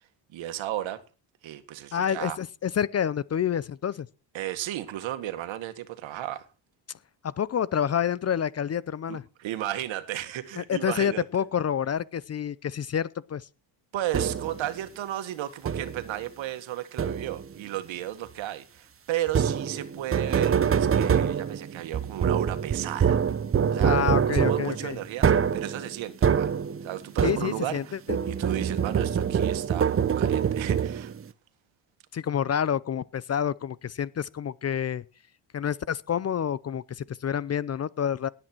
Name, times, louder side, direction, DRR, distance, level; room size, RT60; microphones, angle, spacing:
voice 1, 0.3-1.0 1.4-2.4 4.3-6.5 9.1-11.2 13.9-23.2 23.7-26.5 26.8-28.0 28.3-31.1, right 13 dB, 70° right, 1.8 m, -34 dB
voice 2, 1.9-4.1 7.2-9.2 10.6-13.5 23.8-25.0 27.2-28.2 32.1-35.0 35.5-38.3, left 8 dB, 35° left, 0.6 m, -28 dB
sound 1, 14.1-14.7 15.7-16.1 17.0-17.5 19.3-27.8 28.1-31.2, right 7 dB, 30° right, 0.8 m, -25 dB
18.0 x 8.9 x 4.5 m
cardioid pair, 105°, 48 cm